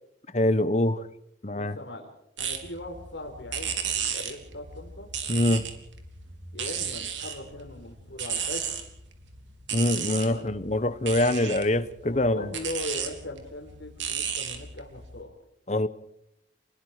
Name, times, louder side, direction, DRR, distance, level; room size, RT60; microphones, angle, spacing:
voice 1, 0.3-1.1 1.4-1.7 5.3-5.6 9.7-12.5 15.7-15.9, left 1 dB, 35° left, 1.1 m, -24 dB
voice 2, 1.5-2.1 2.4-5.1 5.5-5.7 6.5-8.7 10.2-10.5 12.0-15.3, left 1 dB, 75° left, 4.2 m, -39 dB
sound 1, 2.4-15.2, right 7 dB, 80° right, 3.3 m, -35 dB
28.0 x 21.0 x 5.0 m
head